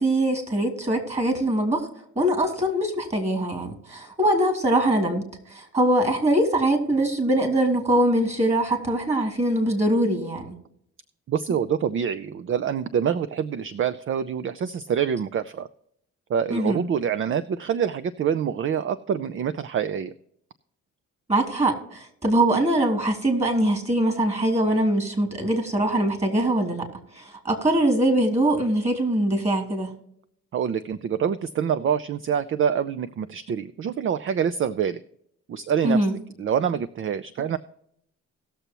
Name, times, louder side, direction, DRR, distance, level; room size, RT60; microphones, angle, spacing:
voice 1, 0.0-1.8 2.2-5.2 5.5-10.5 16.5-16.8 21.3-26.8 27.2-29.9 35.8-36.1, right 1 dB, 20° right, 5 dB, 2.9 m, -22 dB
voice 2, 11.3-15.7 16.3-20.1 30.5-35.0 35.5-36.0 36.4-37.6, right 8 dB, 45° right, 13 dB, 0.5 m, -26 dB
18.5 x 6.9 x 3.0 m, 0.71 s
cardioid pair, 90°, 30 cm